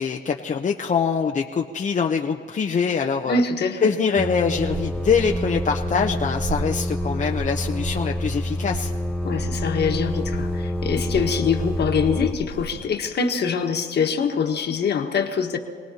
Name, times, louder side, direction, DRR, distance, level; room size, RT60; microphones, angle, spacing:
voice 1, 0.0-3.4 3.8-8.9, left 6 dB, 40° left, 1 dB, 0.8 m, -24 dB
voice 2, 3.3-3.9 9.2-15.6, left 5 dB, 55° left, 4 dB, 1.5 m, -24 dB
sound 1, 4.2-12.3, left 1 dB, 5° left, 0.4 m, -28 dB
sound 2, 4.5-12.8, right 3 dB, 50° right, 2.0 m, -34 dB
27.0 x 18.5 x 2.9 m, 2.2 s
cardioid pair, 90°, 20 cm